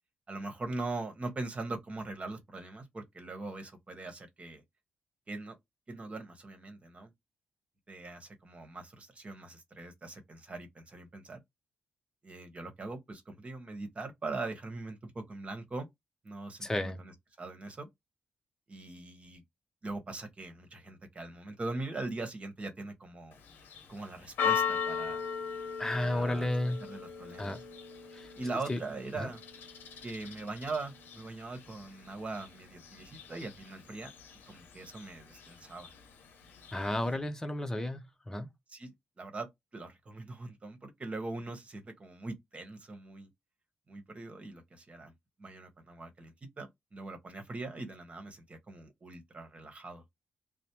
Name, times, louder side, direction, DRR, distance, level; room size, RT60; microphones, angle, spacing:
voice 1, 0.3-4.6 5.3-5.5 5.9-7.1 7.9-11.4 12.2-15.9 16.2-17.1 17.4-17.9 18.7-19.4 19.8-23.4 23.9-25.2 25.9-26.5 26.8-27.5 28.3-29.4 30.0-34.1 34.5-35.9 36.9-37.1 38.7-43.3 43.9-45.1 45.4-50.0, right 3 dB, 35° right, 1.1 m, -41 dB
voice 2, 16.6-17.0 25.8-26.8 27.4-27.6 28.1-28.3 28.7-28.8 29.2-29.3 36.7-38.5, left 1 dB, 15° left, 0.7 m, -32 dB
Church bell, 23.3-37.1, left 7 dB, 75° left, 0.6 m, -39 dB
3.1 x 2.0 x 2.8 m
cardioid pair, 65°, 3 cm